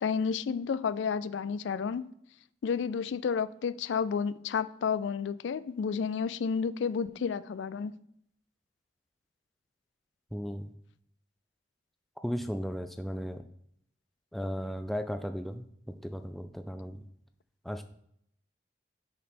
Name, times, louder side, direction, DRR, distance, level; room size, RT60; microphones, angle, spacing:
voice 1, 0.0-2.0 2.6-7.9, left 6 dB, 90° left, 0.4 m, -31 dB
voice 2, 10.3-10.7 12.2-13.4 14.3-17.0 17.7-17.8, equal, ahead, 0.3 m, -36 dB
6.6 x 5.3 x 4.3 m
head